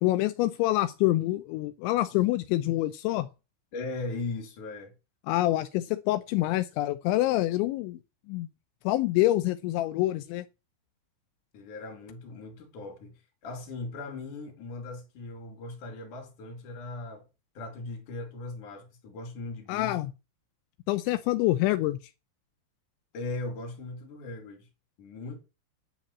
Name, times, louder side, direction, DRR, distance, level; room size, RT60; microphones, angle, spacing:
voice 1, 0.0-3.3 5.3-8.0 8.3-8.5 8.8-10.4 19.7-20.1 20.9-22.0, left 16 dB, 85° left, 3.0 m, -26 dB
voice 2, 3.7-4.9 11.5-17.3 17.6-20.0 23.1-24.7 25.0-25.4, left 3 dB, 50° left, 3.6 m, -38 dB
10.0 x 5.6 x 8.5 m
omnidirectional pair, 5.3 m